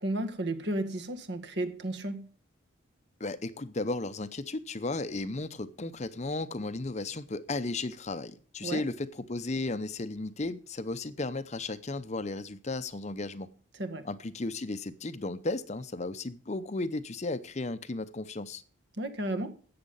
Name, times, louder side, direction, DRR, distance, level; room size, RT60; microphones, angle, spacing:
voice 1, 0.0-2.3 8.6-8.8 13.8-14.0 19.0-19.6, right 1 dB, 60° right, 1.7 m, -33 dB
voice 2, 3.2-13.5 14.0-18.6, left 2 dB, 35° left, 0.7 m, -34 dB
13.5 x 8.7 x 5.5 m
head